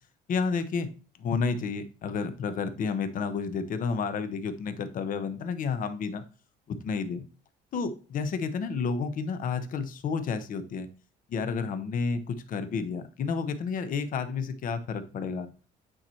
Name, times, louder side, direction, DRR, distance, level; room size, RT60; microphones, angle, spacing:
voice 1, 0.3-0.9 1.2-6.2 6.7-7.3 7.7-10.9 11.3-15.5, left 5 dB, 55° left, 10 dB, 0.9 m, -31 dB
8.7 x 3.1 x 4.4 m, 0.37 s
cardioid pair, 110°, 17 cm